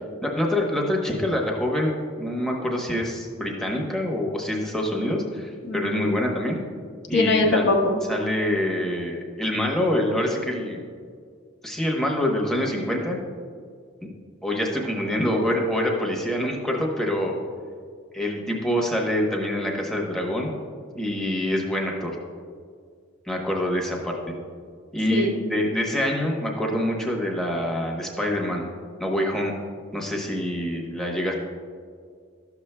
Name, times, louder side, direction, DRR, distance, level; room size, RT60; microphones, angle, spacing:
voice 1, 0.2-6.6 7.1-7.7 8.1-10.8 11.6-13.2 14.0-14.1 14.4-17.4 18.1-20.5 20.9-22.2 23.3-24.2 24.9-28.6 29.0-29.5 29.9-31.3, left 1 dB, ahead, -1 dB, 0.9 m, -25 dB
voice 2, 5.6-6.3 7.1-8.0 25.1-25.3, left 2 dB, 55° left, 1 dB, 1.0 m, -23 dB
12.5 x 7.0 x 2.2 m, 2.1 s
head